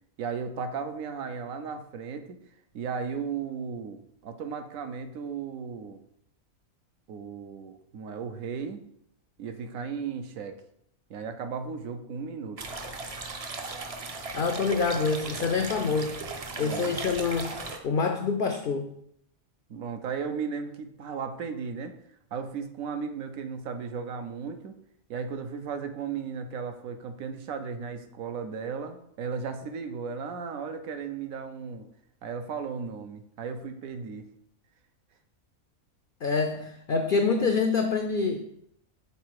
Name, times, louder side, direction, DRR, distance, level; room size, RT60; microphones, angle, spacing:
voice 1, 0.2-2.4 2.7-6.0 7.1-8.8 9.4-10.6 11.1-12.6 16.6-16.9 19.7-21.9 22.3-24.7 25.1-31.9 32.2-34.3, right 6 dB, 75° right, 8 dB, 1.1 m, -35 dB
sound 1, 12.6-17.8, right 3 dB, 45° right, 0.4 m, -37 dB
voice 2, 14.3-16.3 16.6-18.9 36.2-38.4, left 4 dB, 75° left, 5 dB, 0.5 m, -26 dB
5.6 x 4.2 x 4.6 m, 0.73 s
omnidirectional pair, 1.4 m